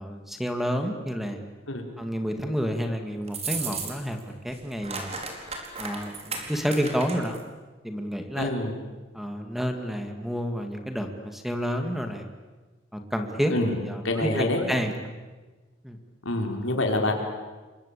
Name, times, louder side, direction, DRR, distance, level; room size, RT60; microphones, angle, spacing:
voice 1, 0.0-1.4 2.0-5.1 5.8-7.4 7.8-8.5 9.1-12.3 12.9-13.5 13.8-15.1 15.8-16.0, equal, ahead, 6 dB, 2.4 m, -30 dB
sound 1, 3.3-4.2 4.5-7.4, right 4 dB, 35° right, 4.6 m, -35 dB
voice 2, 8.4-8.7 13.5-13.8 14.0-14.6 16.2-17.1, left 1 dB, 85° left, 3 dB, 5.2 m, -26 dB
28.5 x 24.0 x 8.6 m, 1.3 s
head